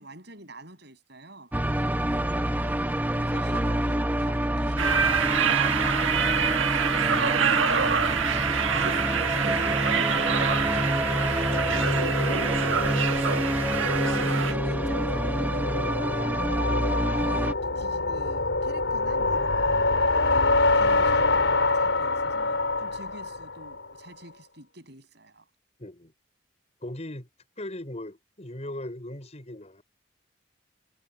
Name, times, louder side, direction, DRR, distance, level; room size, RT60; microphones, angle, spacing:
voice 1, 0.0-1.5 3.1-5.4 5.8-11.2 13.9-15.8 16.8-20.1 20.6-25.4, right 1 dB, 55° right, 8.0 m, -46 dB
sound 1, 1.5-17.5, right 1 dB, 10° right, 1.0 m, -27 dB
sound 2, 4.8-14.5, right 6 dB, 85° right, 1.5 m, -26 dB
sound 3, 8.7-23.9, left 3 dB, 75° left, 4.0 m, -27 dB
voice 2, 25.8-26.1 26.8-27.3 27.6-29.8, left 1 dB, 35° left, 5.6 m, -38 dB
head